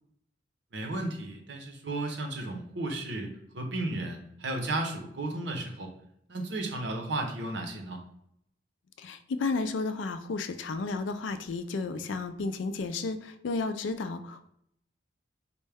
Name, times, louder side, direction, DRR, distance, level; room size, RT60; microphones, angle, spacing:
voice 1, 0.7-5.9 6.3-8.0, right 2 dB, 65° right, 4 dB, 0.7 m, -34 dB
voice 2, 9.0-14.5, left 3 dB, 85° left, 10 dB, 0.4 m, -32 dB
4.4 x 2.1 x 3.4 m, 0.73 s
head